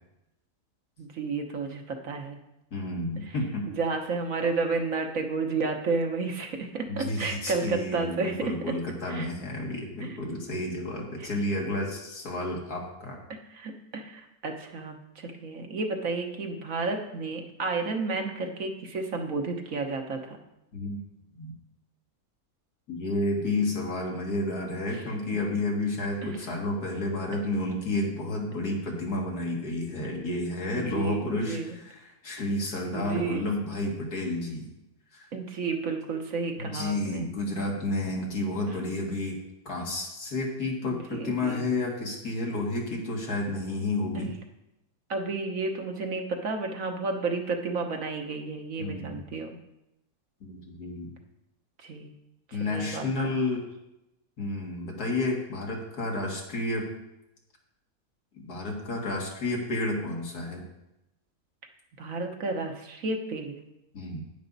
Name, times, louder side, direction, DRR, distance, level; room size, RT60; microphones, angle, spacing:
voice 1, 1.0-2.4 3.3-3.4 3.7-8.8 9.1-9.3 10.0-10.2 11.2-11.3 13.5-20.4 24.9-25.0 26.2-26.5 30.7-31.8 32.9-33.4 35.3-37.3 40.8-41.7 44.1-44.3 45.1-49.6 51.8-52.1 52.5-53.3 62.0-63.5, right 3 dB, 60° right, 4 dB, 1.5 m, -32 dB
voice 2, 2.7-3.7 6.9-13.2 20.7-21.0 21.4-21.5 22.9-34.7 35.1-35.3 36.6-39.4 39.7-44.3 48.8-49.2 50.4-51.1 52.5-53.6 54.4-56.9 58.3-60.6 63.9-64.2, left 2 dB, 85° left, -1 dB, 2.5 m, -31 dB
10.0 x 9.6 x 4.1 m, 0.89 s
omnidirectional pair, 1.6 m